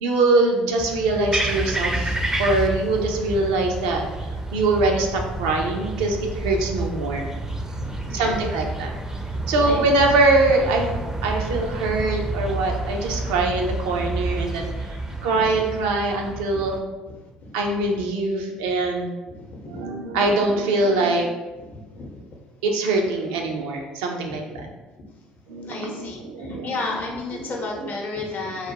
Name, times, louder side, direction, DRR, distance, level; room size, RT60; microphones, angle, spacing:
voice 1, 0.0-4.0 4.5-7.3 8.1-8.9 9.5-16.8 17.5-19.1 19.6-21.3 22.6-24.6 25.5-26.8 27.3-27.9, right 2 dB, 80° right, 2 dB, 0.4 m, -23 dB
sound 1, 0.8-16.8, right 2 dB, 15° right, 0.4 m, -29 dB
voice 2, 7.7-8.4 9.3-9.8 11.2-11.3 13.0-13.1 15.1-15.2 16.5-16.6 17.1-17.6 19.3-19.9 21.6-22.1 24.3-24.7 25.6-28.7, left 3 dB, 50° left, 0 dB, 0.6 m, -34 dB
2.4 x 2.0 x 2.8 m, 1.2 s
hypercardioid pair, 55°, 4 cm